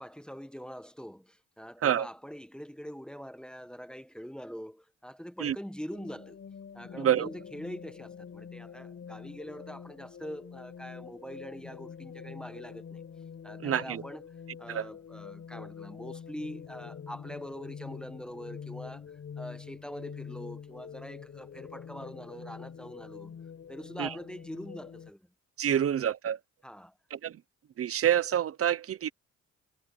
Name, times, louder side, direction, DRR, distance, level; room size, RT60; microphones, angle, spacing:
voice 1, 0.0-6.4 6.7-13.0 13.4-14.2 14.6-19.1 19.4-23.4 23.7-25.3 25.7-25.8 26.6-26.9, equal, 5° left, 1.4 m, -43 dB
sound 1, 5.9-25.1, left 7 dB, 50° left, 4.3 m, -45 dB
voice 2, 7.0-7.3 13.6-14.0 14.7-14.9 24.0-24.1 25.6-26.4 27.1-27.4 27.8-29.1, right 10 dB, 50° right, 0.9 m, -27 dB
cardioid pair, 90°, 30 cm